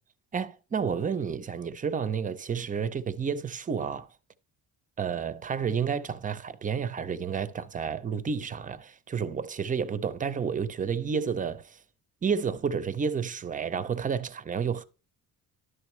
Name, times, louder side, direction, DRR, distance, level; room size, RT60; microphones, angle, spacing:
voice 1, 0.3-4.1 5.0-11.8 12.2-14.8, right 6 dB, 25° right, 0.4 m, -30 dB
11.0 x 7.0 x 3.1 m
cardioid pair, 160°, 34 cm